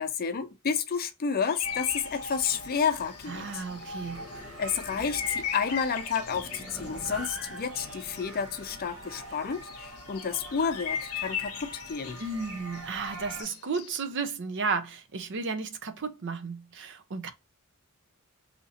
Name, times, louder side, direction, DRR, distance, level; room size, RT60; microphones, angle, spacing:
voice 1, 0.0-3.6 4.6-12.2, left 6 dB, 45° left, 0.5 m, -30 dB
sound 1, 1.4-9.0 9.3-13.9, left 8 dB, 80° left, 0.7 m, -39 dB
sound 2, 1.6-13.4, right 1 dB, 75° right, 1.3 m, -43 dB
sound 3, 3.3-9.6, left 1 dB, ahead, 1.0 m, -46 dB
voice 2, 3.3-4.3 12.2-17.3, right 4 dB, 55° right, 0.6 m, -33 dB
2.9 x 2.6 x 4.1 m
head